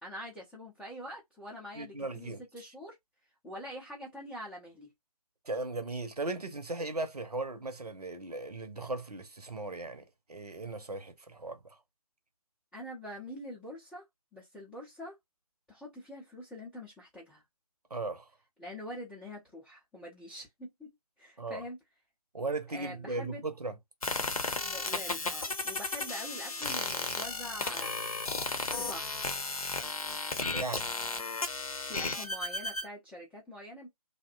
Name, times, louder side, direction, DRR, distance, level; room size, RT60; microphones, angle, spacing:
voice 1, 0.0-3.0 3.4-4.9 12.7-14.1 14.3-15.2 15.7-17.4 18.6-20.9 21.2-21.8 22.7-23.4 24.6-28.2 28.7-29.2 31.8-33.9, equal, 5° left, 0.5 m, -45 dB
voice 2, 1.7-2.7 5.5-11.8 17.9-18.3 21.4-21.6 22.3-23.8 30.5-30.9, right 2 dB, 80° right, 0.8 m, -37 dB
sound 1, 24.0-32.9, left 3 dB, 65° left, 0.7 m, -34 dB
2.6 x 2.2 x 2.4 m
figure-of-eight pair, 140°, 20 cm